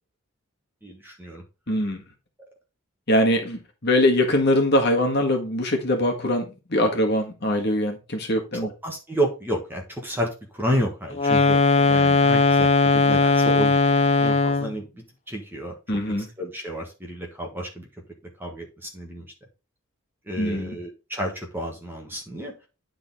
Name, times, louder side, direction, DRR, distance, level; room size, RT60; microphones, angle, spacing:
voice 1, 0.8-1.4 8.5-15.7 16.4-17.9 18.4-19.2 20.3-22.7, right 1 dB, 10° right, 1.4 m, -31 dB
voice 2, 1.7-2.0 3.1-8.7 15.9-16.3 20.4-20.7, left 1 dB, 45° left, 1.7 m, -22 dB
sound 1, 11.1-14.8, left 3 dB, 30° left, 0.6 m, -19 dB
9.7 x 4.0 x 4.0 m
head